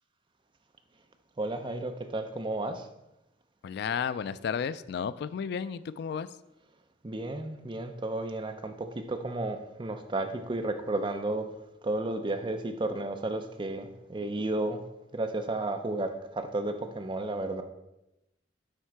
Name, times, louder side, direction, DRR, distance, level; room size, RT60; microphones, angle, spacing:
voice 1, 1.4-2.9 7.0-11.5 11.8-14.8 15.1-17.6, right 2 dB, 30° right, 7 dB, 0.6 m, -32 dB
voice 2, 3.6-6.3, left 7 dB, 65° left, 16 dB, 0.3 m, -33 dB
8.9 x 3.7 x 4.6 m, 0.92 s
head